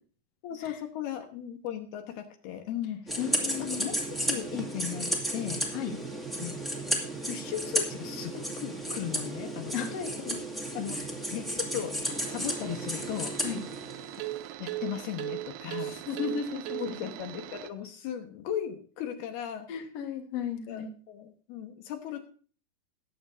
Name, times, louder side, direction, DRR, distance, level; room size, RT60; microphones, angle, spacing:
voice 1, 0.4-3.2 3.6-5.7 6.4-6.6 7.3-10.4 10.7-11.0 11.3-11.9 12.3-13.3 14.6-16.0 16.8-19.7 20.4-22.2, left 10 dB, 75° left, 5 dB, 3.1 m, -37 dB
sound 1, 3.1-14.3, right 1 dB, ahead, 0.9 m, -33 dB
voice 2, 3.2-3.9 5.7-5.9 9.7-9.9 13.4-13.6 15.8-16.9 19.7-20.9, left 7 dB, 55° left, 4 dB, 2.0 m, -34 dB
sound 2, 12.0-17.7, right 15 dB, 80° right, 2.5 m, -39 dB
20.5 x 8.0 x 2.7 m, 0.41 s
omnidirectional pair, 4.9 m